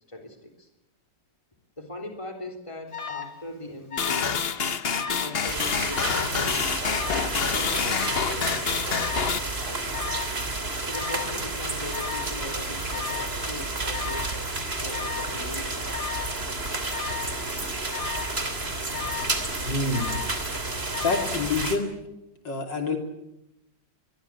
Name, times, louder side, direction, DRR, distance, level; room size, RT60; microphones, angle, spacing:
voice 1, 0.1-0.7 1.8-4.4 5.0-10.0 10.8-14.3 14.7-15.9, left 1 dB, 15° left, 4 dB, 3.4 m, -40 dB
Alarm, 2.9-3.4 3.9-4.4 4.7-5.4 5.9-6.3 6.9-7.4 7.9-8.4 8.9-9.4 9.9-10.4 10.9-11.4 11.9-12.4 12.9-13.4 13.9-14.4 14.9-15.4 15.9-16.4 16.9-17.4 17.9-18.4 18.9-19.4 19.9-20.4 20.9-21.4, left 6 dB, 85° left, 3.4 m, -35 dB
sound 1, 4.0-9.4, left 6 dB, 40° left, 1.0 m, -27 dB
sound 2, 5.5-21.8, right 2 dB, 30° right, 3.2 m, -31 dB
voice 2, 19.7-20.2 21.0-21.9 22.4-23.0, left 3 dB, 70° left, 4 dB, 3.8 m, -27 dB
24.0 x 21.5 x 8.4 m, 0.88 s
omnidirectional pair, 2.0 m